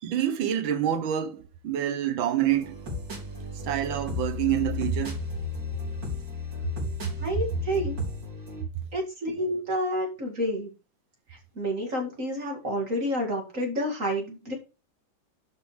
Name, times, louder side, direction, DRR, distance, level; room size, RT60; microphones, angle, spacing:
voice 1, 0.0-2.8 3.6-5.2, right 11 dB, 80° right, 1.6 m, -27 dB
sound 1, 2.4-8.6, left 5 dB, 60° right, 4.5 m, -34 dB
voice 2, 7.2-8.0 8.9-10.7 11.6-14.5, equal, 40° right, 2.5 m, -29 dB
11.5 x 5.5 x 3.2 m
omnidirectional pair, 2.2 m